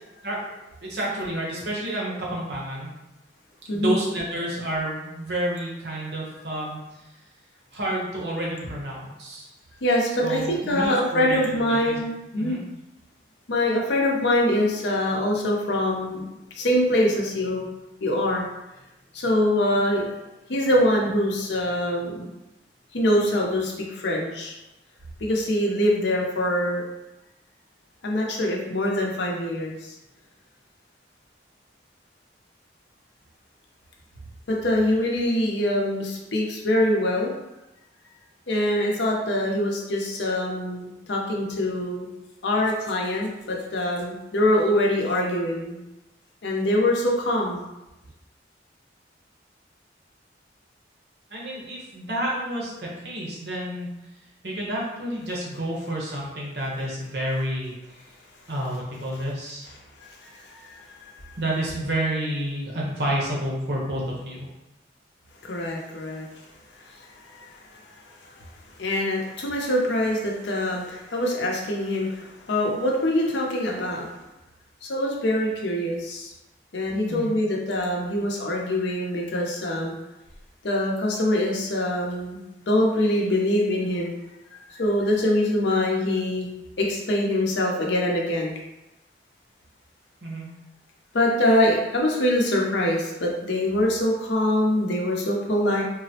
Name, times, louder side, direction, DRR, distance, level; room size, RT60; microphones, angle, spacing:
voice 1, 0.8-2.9 3.7-7.0 7.7-9.5 10.2-12.0 12.4-12.6 51.3-53.9 54.4-57.7 58.5-59.7 61.4-64.5 77.0-77.3 90.2-90.5, right 1 dB, 65° right, -4 dB, 0.8 m, -29 dB
voice 2, 9.8-12.6 13.5-16.3 16.6-17.7 18.0-18.5 19.1-20.1 20.5-22.3 22.9-24.5 25.2-26.8 28.0-29.9 34.5-37.3 38.5-42.1 42.4-45.8 46.4-47.6 60.0-61.2 65.4-66.3 66.8-68.4 68.8-74.1 74.8-76.3 76.7-79.9 80.6-82.4 82.7-84.2 84.5-86.5 86.8-88.6 91.1-95.8, left 1 dB, 75° left, -1 dB, 0.6 m, -24 dB
3.8 x 2.0 x 2.7 m, 0.96 s
head